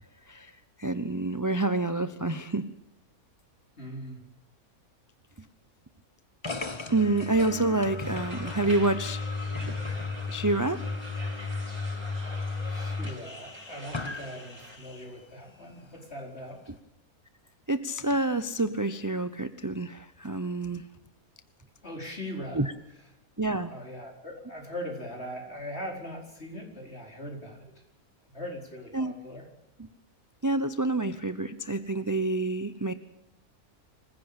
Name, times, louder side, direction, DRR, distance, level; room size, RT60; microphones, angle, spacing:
voice 1, 0.8-2.7 6.9-9.3 9.6-9.7 10.3-10.8 17.7-20.8 22.5-22.7 23.4-23.7 28.9-29.1 30.4-32.9, right 2 dB, 20° right, 12 dB, 0.6 m, -28 dB
voice 2, 3.8-4.2 12.6-16.6 21.8-22.7 23.7-27.7 28.3-29.5, equal, 40° left, 2 dB, 5.1 m, -40 dB
sound 1, 6.4-15.2, left 3 dB, 20° left, 1.0 m, -35 dB
sound 2, 8.0-14.8, right 1 dB, 70° right, 6.5 m, -45 dB
25.0 x 16.0 x 8.9 m, 0.85 s
omnidirectional pair, 1.6 m